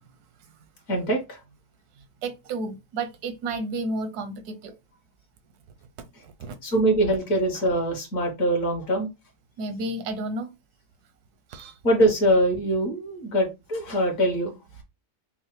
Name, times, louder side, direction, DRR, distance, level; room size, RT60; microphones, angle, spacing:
voice 1, 0.9-1.4 6.6-9.1 11.8-14.5, right 1 dB, 60° left, 1.6 m, -23 dB
voice 2, 2.2-4.7 6.2-6.6 9.6-10.5 11.5-11.8, right 2 dB, 85° right, 1.2 m, -32 dB
5.4 x 2.0 x 3.1 m
omnidirectional pair, 1.6 m